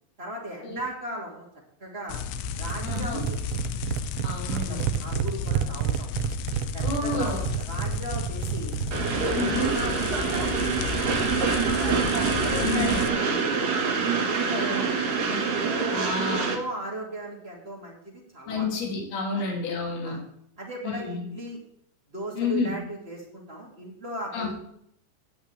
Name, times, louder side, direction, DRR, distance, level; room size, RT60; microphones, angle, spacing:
voice 1, 0.2-1.5 1.8-2.2 2.6-3.4 4.5-6.2 6.7-8.8 9.2-12.0 12.3-13.8 14.2-14.9 15.5-15.6 16.2-18.7 19.3-19.5 20.0-20.2 20.6-21.6 22.1-24.6, right 1 dB, 25° right, -1 dB, 1.5 m, -37 dB
sound 1, 2.1-13.1, left 7 dB, 80° left, 2.6 m, -33 dB
sound 2, 2.6-9.1, right 12 dB, 85° right, 2.1 m, -30 dB
voice 2, 2.8-3.2 4.2-4.9 6.8-7.4 9.3-9.7 12.6-13.1 14.5-14.8 15.3-15.4 15.9-16.5 18.5-20.2 20.8-21.2 22.4-22.7 24.3-24.5, left 4 dB, 60° left, -2 dB, 4.5 m, -30 dB
Train, 8.9-16.5, right 5 dB, 60° right, 3.0 m, -26 dB
17.0 x 8.8 x 3.4 m, 0.72 s
omnidirectional pair, 5.0 m